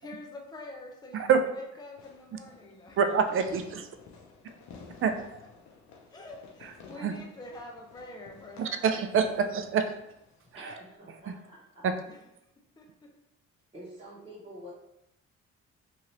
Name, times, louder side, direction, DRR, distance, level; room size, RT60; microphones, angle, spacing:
voice 1, 0.0-3.0 6.1-8.9 9.3-9.4 10.7-10.8 12.8-13.1, left 2 dB, 15° left, 1 dB, 0.5 m, -46 dB
voice 2, 1.1-1.4 2.3-2.4 3.0-3.8 5.0-5.1 6.6-7.2 8.6-9.8 10.5-10.7 11.3-11.4 11.8-11.9, right 6 dB, 45° right, 8 dB, 0.4 m, -26 dB
Fireworks, 2.0-11.0, left 5 dB, 65° left, 0.6 m, -54 dB
voice 3, 10.5-11.8 13.7-14.7, equal, 20° right, -8 dB, 1.1 m, -47 dB
2.8 x 2.6 x 3.1 m, 0.85 s
cardioid pair, 90°, 30 cm